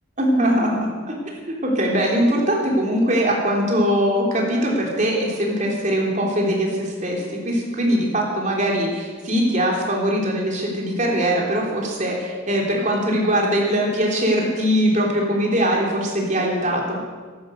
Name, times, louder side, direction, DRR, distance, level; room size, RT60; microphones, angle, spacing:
voice 1, 0.2-0.9 1.5-17.0, equal, 40° right, -1 dB, 3.5 m, -21 dB
14.5 x 11.5 x 8.1 m, 1.5 s
head